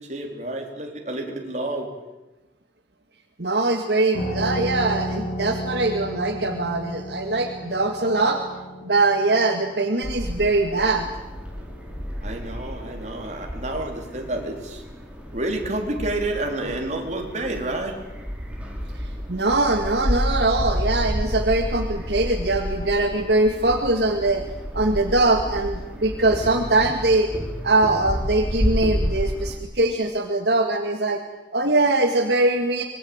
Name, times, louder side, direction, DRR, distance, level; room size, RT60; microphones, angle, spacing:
voice 1, 0.0-1.9 12.2-14.8 15.3-18.0, right 2 dB, 40° right, 2 dB, 4.2 m, -29 dB
voice 2, 3.4-8.4 8.8-11.1 19.3-24.4 24.7-27.3 27.6-31.2 31.5-32.8, right 2 dB, 70° right, 4 dB, 2.1 m, -22 dB
sound 1, 4.1-13.3, equal, 75° left, 6.6 m, -34 dB
sound 2, 10.0-29.6, equal, 5° right, 4.4 m, -30 dB
25.0 x 21.0 x 8.9 m, 1.1 s
head